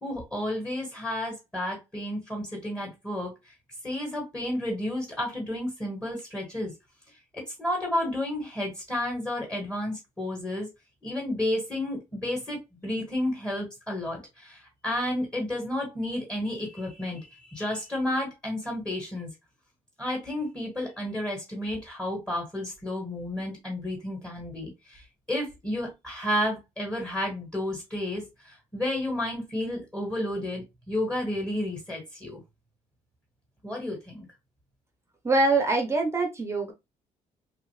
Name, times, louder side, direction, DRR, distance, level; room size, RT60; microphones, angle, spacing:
voice 1, 0.0-3.5 3.8-6.7 7.3-10.7 11.0-19.3 20.0-32.4 33.6-34.3, left 1 dB, 5° left, 1.4 m, -31 dB
voice 2, 35.2-36.7, right 2 dB, 20° right, 0.6 m, -24 dB
3.1 x 2.4 x 3.1 m
cardioid pair, 150°, 13 cm